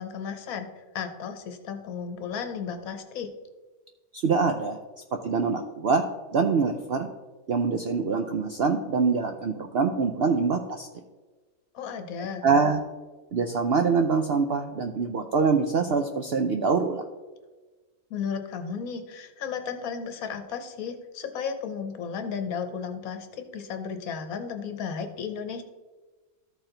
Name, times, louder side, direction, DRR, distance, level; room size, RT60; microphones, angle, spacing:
voice 1, 0.0-3.3 11.7-12.4 18.1-25.6, left 6 dB, 65° left, 7 dB, 1.2 m, -34 dB
voice 2, 4.1-4.8 5.2-6.0 6.3-7.1 7.5-10.9 12.2-12.8 13.3-17.0, right 5 dB, 70° right, 5 dB, 0.6 m, -24 dB
13.5 x 4.5 x 3.8 m, 1.3 s
omnidirectional pair, 1.6 m